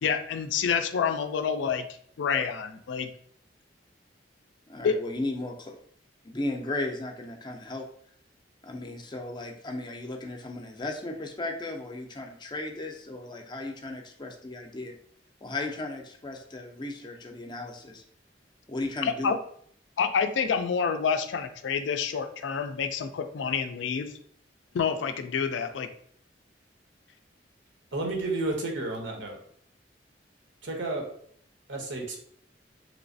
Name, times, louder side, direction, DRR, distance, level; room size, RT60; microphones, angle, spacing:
voice 1, 0.0-1.9 2.2-3.1 4.8-5.0 19.0-19.4 20.0-24.1 24.7-25.9, left 6 dB, 85° left, 0.4 m, -28 dB
voice 2, 4.7-5.8 6.2-7.9 8.6-14.9 15.4-18.0 18.7-19.3, left 2 dB, 25° left, 0.4 m, -35 dB
voice 3, 27.9-29.4 30.6-31.1 31.7-32.2, right 2 dB, 85° right, 0.9 m, -31 dB
3.2 x 3.1 x 2.6 m
head